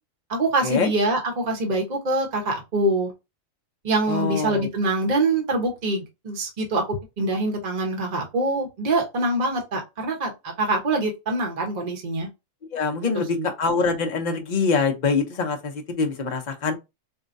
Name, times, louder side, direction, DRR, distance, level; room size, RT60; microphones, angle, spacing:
voice 1, 0.3-3.1 3.8-12.3 13.3-13.5, right 2 dB, 35° right, 0.9 m, -24 dB
voice 2, 4.1-4.7 12.7-16.7, left 4 dB, 40° left, 0.7 m, -24 dB
4.5 x 2.2 x 2.5 m
omnidirectional pair, 1.4 m